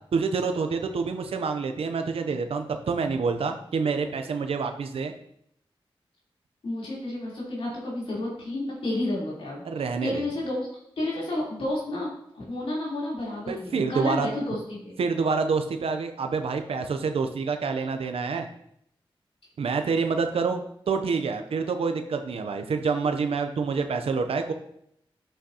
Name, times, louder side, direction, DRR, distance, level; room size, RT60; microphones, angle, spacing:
voice 1, 0.1-5.1 9.6-10.2 13.5-14.3 15.0-18.5 19.6-20.6 20.9-24.5, right 5 dB, 90° right, 6 dB, 0.6 m, -27 dB
voice 2, 6.6-10.7 11.0-15.0, left 1 dB, 85° left, -6 dB, 3.5 m, -31 dB
8.8 x 7.7 x 2.8 m, 0.73 s
cardioid pair, 45°, 10 cm